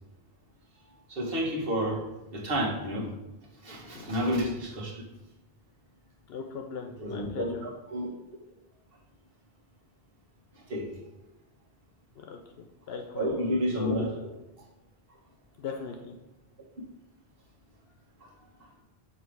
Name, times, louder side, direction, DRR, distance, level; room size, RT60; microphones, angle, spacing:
voice 1, 1.1-2.0 2.3-3.1 3.6-5.0 7.0-8.1 10.5-10.9 13.1-14.1 18.2-18.3, equal, 60° right, -2 dB, 1.5 m, -30 dB
voice 2, 6.3-7.6 12.2-13.4 13.7-14.1 15.6-16.2, left 5 dB, 70° left, 3 dB, 0.8 m, -39 dB
6.7 x 3.1 x 4.6 m, 0.98 s
omnidirectional pair, 1.1 m